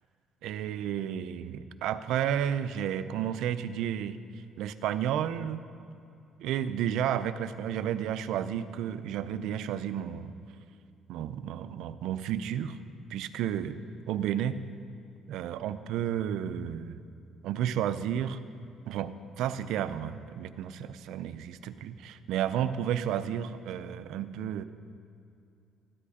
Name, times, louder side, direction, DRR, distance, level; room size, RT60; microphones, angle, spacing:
voice 1, 0.4-4.2 4.6-5.6 6.4-10.3 11.1-12.8 13.1-13.8 14.1-14.6 15.3-17.0 17.4-18.4 18.9-24.6, right 10 dB, 85° right, 12 dB, 0.5 m, -32 dB
13.5 x 11.0 x 5.0 m, 2.6 s
cardioid pair, 140°, 0 cm